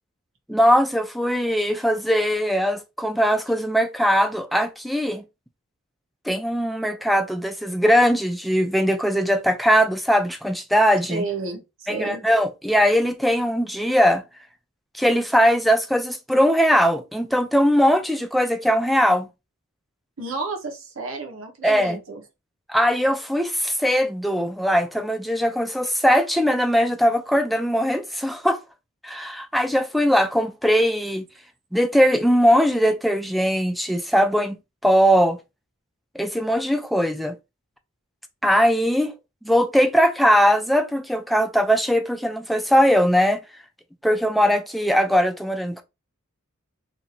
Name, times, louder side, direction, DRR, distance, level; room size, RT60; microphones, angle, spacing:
voice 1, 0.5-5.2 6.3-11.2 11.9-14.2 14.9-19.3 21.6-22.0 22.7-28.6 29.0-31.3 31.7-34.6 34.8-35.4 36.1-37.3 38.4-39.1 39.4-43.4 44.0-45.8, equal, ahead, 0.3 m, -20 dB
voice 2, 11.1-12.2 20.2-22.2, right 3 dB, 65° right, 1.0 m, -31 dB
2.7 x 2.6 x 4.2 m
head